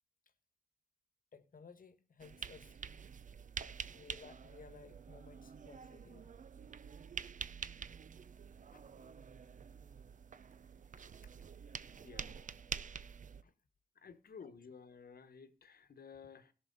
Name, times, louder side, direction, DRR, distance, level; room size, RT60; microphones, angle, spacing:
voice 1, 1.3-2.8 3.9-6.3 8.7-8.9 11.2-11.4 11.9-12.0 12.6-12.7 13.4-13.5 14.4-14.5, left 5 dB, 65° left, 1.2 m, -58 dB
sound 1, 2.2-13.4, right 6 dB, 55° right, 0.5 m, -47 dB
voice 2, 12.0-12.4 14.0-16.5, left 6 dB, 80° left, 1.1 m, -54 dB
17.0 x 6.2 x 3.9 m
wide cardioid pair, 90°, 16 cm